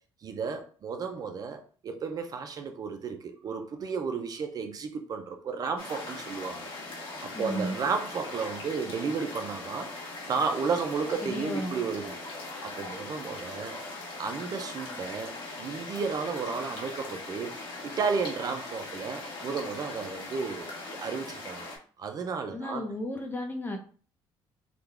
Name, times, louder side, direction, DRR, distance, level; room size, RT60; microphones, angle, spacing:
voice 1, 0.2-6.7 7.2-12.2 12.6-13.8 14.2-17.5 17.8-21.7 22.0-22.8, right 5 dB, 45° right, 0.5 m, -33 dB
sound 1, 5.8-21.8, left 2 dB, 60° left, 1.4 m, -40 dB
voice 2, 7.3-7.8 11.2-11.7 22.5-23.8, left 1 dB, 20° left, 0.8 m, -34 dB
3.7 x 2.3 x 3.3 m
cardioid pair, 120°, 9 cm